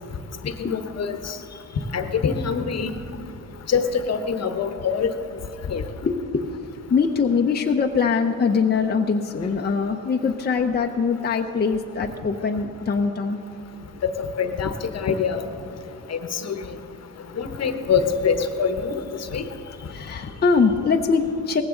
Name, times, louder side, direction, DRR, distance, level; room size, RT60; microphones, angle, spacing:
voice 1, 0.6-1.4 1.9-2.9 3.7-5.1 5.7-5.8 14.0-15.4 16.1-16.6 17.4-19.0 19.3-19.4, left 6 dB, 55° left, 8 dB, 1.1 m, -24 dB
voice 2, 6.0-6.5 6.9-13.4 17.6-17.7 19.4-21.6, left 5 dB, 30° left, 3 dB, 0.8 m, -23 dB
18.0 x 15.5 x 3.9 m, 2.5 s
cardioid pair, 90°, 31 cm